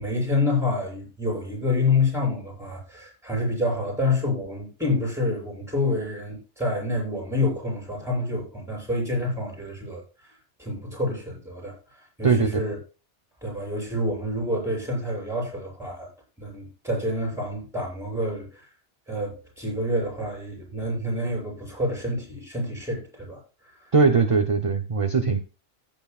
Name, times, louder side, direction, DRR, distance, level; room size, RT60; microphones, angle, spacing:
voice 1, 0.0-10.3 10.6-12.8 13.4-16.1 16.4-18.7 19.1-24.0, left 2 dB, ahead, 7.3 m, -28 dB
voice 2, 12.2-12.6 23.9-25.4, right 4 dB, 35° right, 0.7 m, -20 dB
15.5 x 9.1 x 2.4 m
omnidirectional pair, 1.2 m